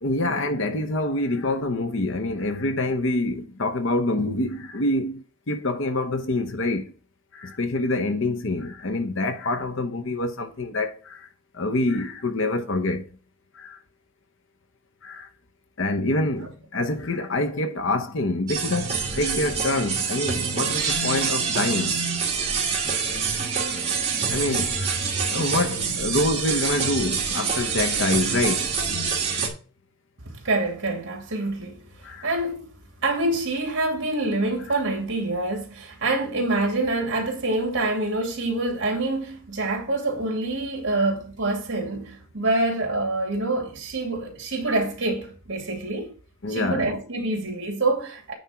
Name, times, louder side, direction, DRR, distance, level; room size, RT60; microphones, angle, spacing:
voice 1, 0.0-6.9 7.3-11.3 11.5-13.1 13.5-13.8 15.0-15.3 15.8-22.0 22.7-23.0 24.3-25.0 25.3-28.7 32.0-32.3 40.9-41.1 46.4-46.9, left 2 dB, 60° left, 0.8 m, -26 dB
sound 1, 18.5-29.5, right 5 dB, 30° right, 2.1 m, -26 dB
voice 2, 30.3-31.8 32.2-32.7 33.0-46.1 46.5-48.3, right 2 dB, 60° right, 2.8 m, -26 dB
9.3 x 3.6 x 5.8 m
head